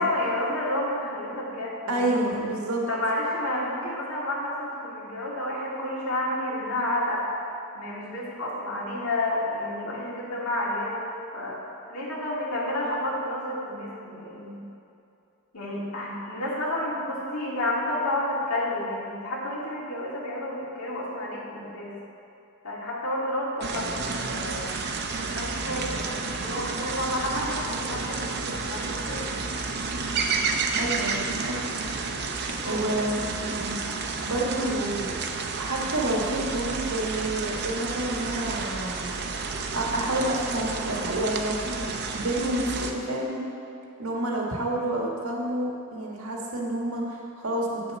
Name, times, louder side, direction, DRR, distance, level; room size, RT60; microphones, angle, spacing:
voice 1, 0.0-2.2 2.9-7.3 7.7-14.6 15.5-21.9 22.6-26.1 26.4-29.2 32.6-33.1, left 1 dB, 85° left, -5 dB, 2.5 m, -30 dB
voice 2, 1.9-2.8 30.7-31.7 32.7-35.1 35.6-39.1 39.7-43.5 44.0-47.8, right 1 dB, 85° right, -1 dB, 1.6 m, -29 dB
sound 1, 23.6-42.9, right 4 dB, 50° right, 0.7 m, -31 dB
8.5 x 7.0 x 6.7 m, 2.7 s
head